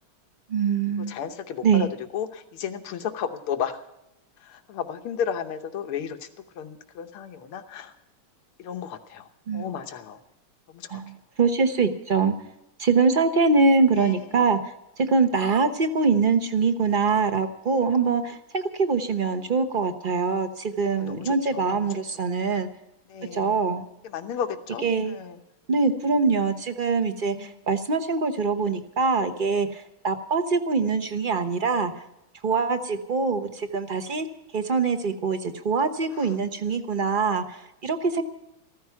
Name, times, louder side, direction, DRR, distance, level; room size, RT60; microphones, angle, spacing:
voice 1, 0.5-1.1 1.6-1.8 9.5-9.7 10.9-12.3 12.8-14.6 15.0-22.7 23.3-23.8 24.8-25.2 25.7-31.9 32.4-34.3 34.5-38.2, right 4 dB, 35° right, 8 dB, 0.8 m, -23 dB
voice 2, 1.1-3.8 4.4-6.3 6.6-7.9 8.6-10.2 10.7-11.0 13.9-14.4 20.9-21.9 22.5-22.6 23.1-23.6 24.0-25.4 27.3-27.6 36.1-36.3, left 8 dB, 90° left, 6 dB, 2.0 m, -34 dB
15.0 x 14.0 x 5.9 m, 0.87 s
omnidirectional pair, 2.3 m